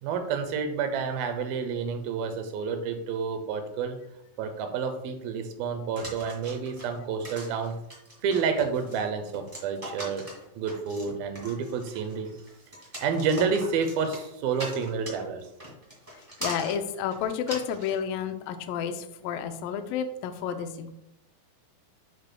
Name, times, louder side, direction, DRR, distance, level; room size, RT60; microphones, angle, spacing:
voice 1, 0.0-4.0 4.4-7.8 8.2-12.3 13.0-15.5, right 5 dB, 80° right, 7 dB, 2.5 m, -29 dB
sound 1, 6.0-18.0, equal, 15° right, 1.5 m, -41 dB
voice 2, 16.4-20.9, left 8 dB, 80° left, 7 dB, 2.2 m, -31 dB
9.3 x 6.1 x 2.2 m, 0.83 s
omnidirectional pair, 4.3 m